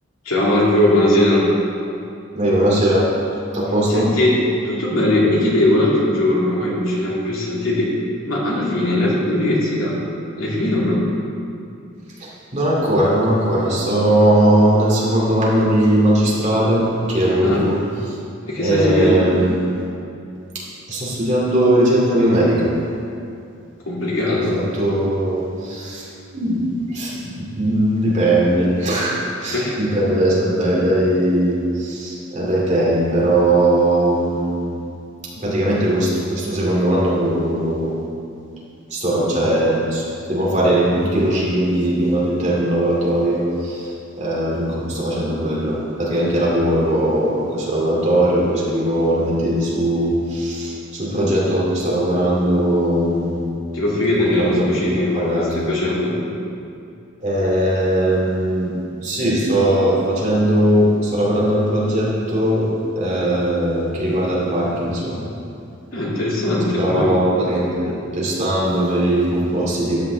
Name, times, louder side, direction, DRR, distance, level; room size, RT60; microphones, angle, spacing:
voice 1, 0.2-1.5 3.9-4.4 4.6-7.9 8.3-10.0 10.4-11.1 17.4-17.6 18.5-19.3 23.9-24.5 29.5-29.8 53.7-56.2 65.9-67.2, left 1 dB, 80° left, -5 dB, 2.5 m, -19 dB
voice 2, 2.3-3.1 3.5-4.1 12.2-17.8 18.0-18.2 18.6-19.8 20.5-20.6 20.9-22.7 24.5-26.1 26.3-34.8 35.4-37.9 38.9-53.3 54.2-55.5 57.2-65.2 66.8-70.0, right 1 dB, 35° right, -6 dB, 2.5 m, -19 dB
13.0 x 9.1 x 3.4 m, 2.6 s
head